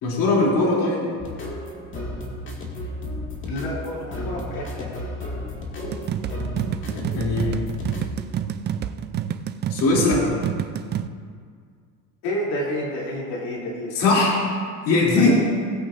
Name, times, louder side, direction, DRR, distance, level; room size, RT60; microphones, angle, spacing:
voice 1, 0.0-1.1 6.8-7.5 9.7-10.3 13.9-14.5 14.8-15.3, left 3 dB, 55° left, -5 dB, 2.9 m, -20 dB
sound 1, 1.2-8.2, left 1 dB, 30° left, 2.1 m, -33 dB
voice 2, 3.5-5.0 12.2-14.0 14.9-15.3, left 1 dB, 80° left, -4 dB, 3.0 m, -30 dB
sound 2, 5.9-11.1, right 9 dB, 30° right, 0.4 m, -28 dB
20.0 x 8.3 x 2.5 m, 2.1 s
cardioid pair, 135°, 39 cm